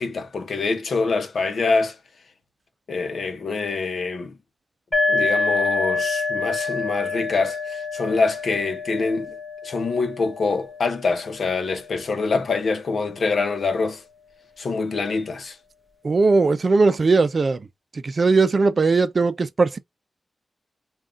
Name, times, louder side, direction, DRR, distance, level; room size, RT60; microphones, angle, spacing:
voice 1, 0.0-2.0 2.9-4.3 5.1-9.4 9.6-14.0 14.6-15.6, left 4 dB, 70° left, 0.8 m, -25 dB
sound 1, 4.9-12.4, left 3 dB, 15° left, 1.1 m, -27 dB
voice 2, 16.0-17.7 17.9-19.8, right 3 dB, 50° right, 0.5 m, -19 dB
3.6 x 2.4 x 3.7 m
cardioid pair, 75°, 0 cm